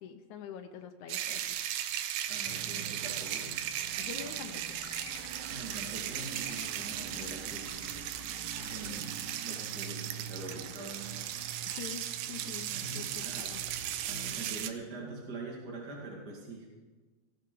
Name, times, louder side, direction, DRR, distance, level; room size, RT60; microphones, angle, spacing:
voice 1, 0.0-1.6 4.0-4.8 8.6-8.9 11.6-13.6, left 7 dB, 80° left, 5 dB, 1.7 m, -45 dB
sound 1, 1.1-14.7, right 11 dB, 90° right, 2.9 m, -37 dB
voice 2, 2.3-3.6 5.4-8.3 8.6-9.2 9.4-11.1 12.7-13.5 14.0-16.7, right 2 dB, 35° right, -2 dB, 1.7 m, -44 dB
sound 2, 2.4-14.4, right 6 dB, 75° right, 1.5 m, -47 dB
sound 3, 4.8-10.1, left 5 dB, 55° left, 2.0 m, -52 dB
18.5 x 16.0 x 3.9 m, 1.3 s
omnidirectional pair, 4.7 m